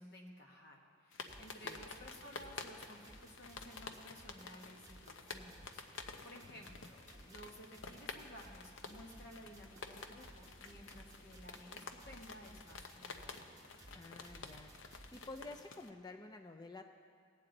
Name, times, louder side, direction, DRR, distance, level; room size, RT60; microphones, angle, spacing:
voice 1, 0.0-13.5, equal, 50° left, 0 dB, 1.4 m, -56 dB
sound 1, 1.1-15.9, left 4 dB, 75° left, 0.6 m, -51 dB
sound 2, 1.3-15.6, right 1 dB, 15° right, 0.9 m, -59 dB
voice 2, 13.9-14.7 15.1-16.8, left 2 dB, 20° left, 5 dB, 0.4 m, -51 dB
18.5 x 8.5 x 3.9 m, 2.4 s
head